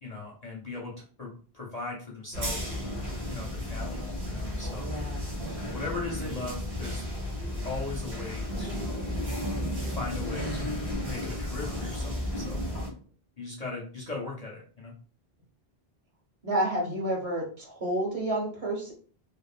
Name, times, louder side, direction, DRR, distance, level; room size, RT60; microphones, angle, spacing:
voice 1, 0.0-2.7 3.3-4.9 5.7-7.0 7.6-9.1 9.7-12.6 13.4-14.9, left 3 dB, 45° left, -2 dB, 0.6 m, -39 dB
sound 1, 2.3-12.9, left 1 dB, 70° right, 1.4 m, -33 dB
voice 2, 4.8-5.2 16.4-18.9, right 1 dB, 35° right, -3 dB, 1.1 m, -30 dB
3.0 x 2.0 x 2.4 m, 0.41 s
omnidirectional pair, 1.1 m